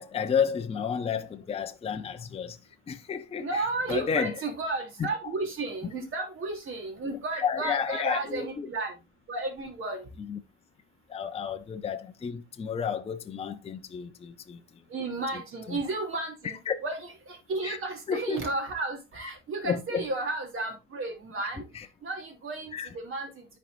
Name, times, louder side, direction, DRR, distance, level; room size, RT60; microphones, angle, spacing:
voice 1, 0.0-2.6 2.9-4.4 5.0-5.1 7.1-8.7 10.3-10.4 11.1-14.8 15.7-15.8 16.4-16.8 17.6-17.8 18.1-18.4 19.6-20.1 21.7-21.9 22.7-22.9, left 7 dB, 20° left, 0.7 m, -31 dB
voice 2, 3.4-8.9 9.3-10.1 14.9-21.6 22.0-23.5, right 3 dB, 40° right, 3.1 m, -33 dB
13.0 x 4.6 x 2.6 m
cardioid pair, 115°, 31 cm